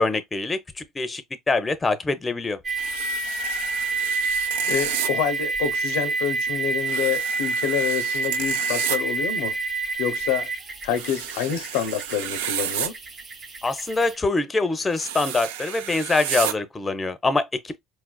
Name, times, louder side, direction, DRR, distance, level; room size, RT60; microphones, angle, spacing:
voice 1, 0.0-2.6 13.6-17.8, left 3 dB, 20° left, 0.5 m, -24 dB
sound 1, 2.6-14.2, right 3 dB, 40° right, 0.7 m, -28 dB
sound 2, 2.8-5.1 6.8-9.0 10.9-12.9 14.9-16.5, right 10 dB, 90° right, 0.3 m, -31 dB
voice 2, 4.7-9.6 10.0-10.5 10.8-13.0, left 9 dB, 80° left, 0.5 m, -27 dB
4.3 x 2.3 x 2.2 m
supercardioid pair, 90°, 0 cm